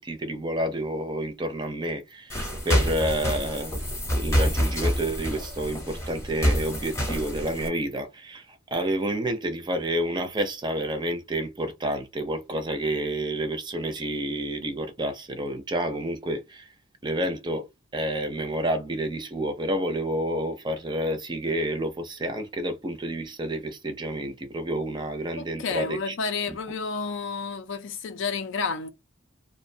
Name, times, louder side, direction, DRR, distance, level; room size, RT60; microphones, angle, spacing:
voice 1, 0.0-3.7 4.1-16.7 17.0-26.2 26.5-26.6, right 1 dB, 20° right, 0.5 m, -29 dB
sound 1, 2.3-7.7, equal, 15° left, 0.7 m, -27 dB
voice 2, 25.4-28.9, left 4 dB, 65° left, 0.4 m, -30 dB
2.4 x 2.1 x 2.6 m
head